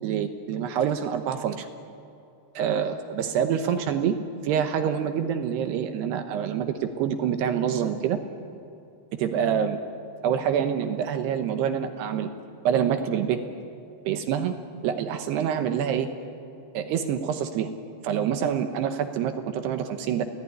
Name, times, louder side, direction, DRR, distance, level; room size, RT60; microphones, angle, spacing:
voice 1, 0.0-1.7 2.6-4.2 4.4-8.2 9.1-9.8 10.2-12.3 12.6-13.4 14.1-14.6 14.8-16.1 16.7-17.7 18.0-20.2, right 8 dB, 75° right, 7 dB, 2.9 m, -26 dB
28.0 x 17.5 x 9.9 m, 2.6 s
omnidirectional pair, 5.2 m